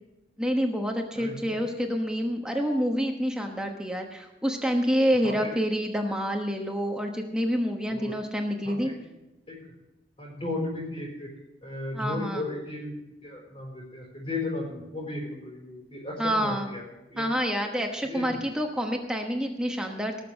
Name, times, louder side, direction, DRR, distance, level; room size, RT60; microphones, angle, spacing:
voice 1, 0.4-8.9 11.9-12.4 16.2-16.7 17.2-20.2, equal, 5° right, 2 dB, 1.1 m, -28 dB
voice 2, 1.1-1.6 5.2-5.5 7.9-8.1 8.6-8.9 9.5-9.6 10.2-11.3 11.6-12.9 13.2-16.8 17.1-17.3 18.0-18.4, left 2 dB, 30° left, -4 dB, 5.1 m, -35 dB
19.0 x 6.8 x 6.4 m, 0.97 s
head